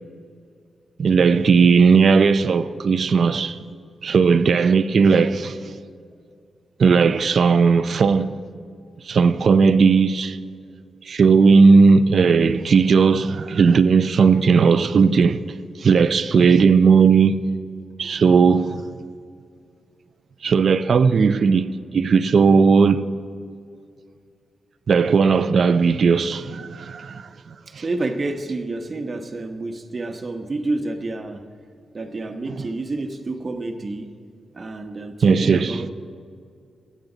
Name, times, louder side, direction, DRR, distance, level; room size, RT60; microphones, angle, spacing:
voice 1, 1.0-3.6 4.0-5.6 6.8-8.4 9.1-10.4 11.1-15.4 15.8-17.4 18.0-18.8 20.4-23.1 24.9-27.3 27.7-27.8 35.2-35.8, right 5 dB, 60° right, 0.5 m, -16 dB
voice 2, 27.8-31.5 31.9-34.1 34.5-35.9, right 2 dB, 35° right, 1.0 m, -29 dB
23.0 x 8.5 x 4.0 m
cardioid pair, 100°, 0 cm